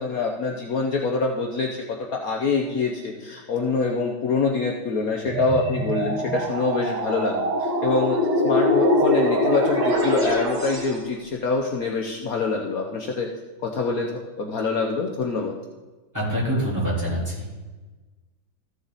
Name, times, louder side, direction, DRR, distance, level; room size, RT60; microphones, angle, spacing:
voice 1, 0.0-1.8 2.1-8.2 8.4-13.3 13.6-15.6, left 4 dB, 60° left, 1 dB, 1.2 m, -25 dB
sound 1, 5.2-11.0, equal, 60° right, 2.7 m, -23 dB
voice 2, 16.1-17.5, equal, 10° right, -7 dB, 3.6 m, -25 dB
14.5 x 7.1 x 4.0 m, 1.3 s
omnidirectional pair, 1.8 m